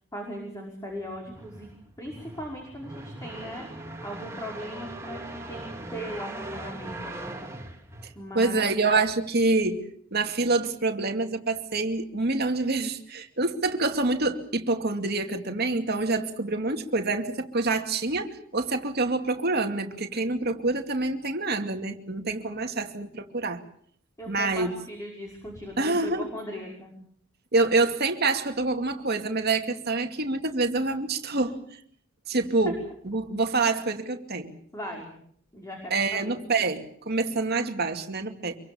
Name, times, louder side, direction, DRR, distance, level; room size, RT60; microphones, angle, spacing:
voice 1, 0.1-1.7 2.0-3.7 4.0-5.6 5.9-7.4 8.2-8.7 24.2-26.9 34.7-35.1 35.5-36.3, equal, 15° left, 0 dB, 5.5 m, -38 dB
sound 1, 1.0-8.6, right 2 dB, 15° right, 3.7 m, -40 dB
voice 2, 8.3-9.8 10.1-23.6 24.3-24.7 25.8-26.3 27.5-31.6 32.3-32.8 33.0-34.5 35.9-38.6, right 3 dB, 50° right, 5 dB, 2.5 m, -26 dB
26.0 x 24.0 x 7.1 m, 0.65 s
head